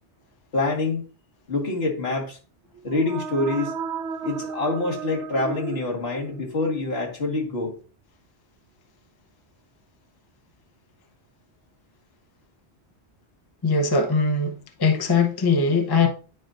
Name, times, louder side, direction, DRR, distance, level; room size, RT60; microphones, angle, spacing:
voice 1, 0.5-1.0 1.5-2.4 2.8-3.7 4.2-7.8, left 2 dB, 65° left, 1.8 m, -26 dB
sound 1, 2.8-6.6, right 6 dB, 80° right, 1.0 m, -34 dB
voice 2, 13.6-16.1, left 4 dB, 25° left, 0.7 m, -21 dB
9.3 x 5.1 x 2.5 m
omnidirectional pair, 1.1 m